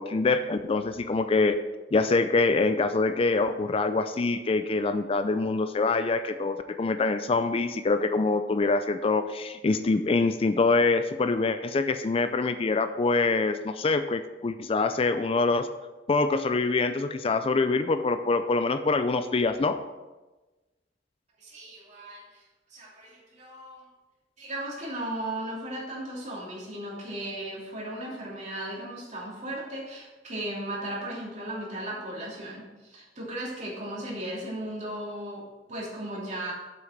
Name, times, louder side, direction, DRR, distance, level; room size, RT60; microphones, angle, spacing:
voice 1, 0.0-1.5 1.9-15.7 16.1-19.8, left 3 dB, 30° left, 10 dB, 0.4 m, -25 dB
voice 2, 21.4-22.4 22.7-23.8 24.4-35.4 35.7-36.5, right 1 dB, 40° right, -4 dB, 2.9 m, -36 dB
7.6 x 6.0 x 5.9 m, 1.1 s
head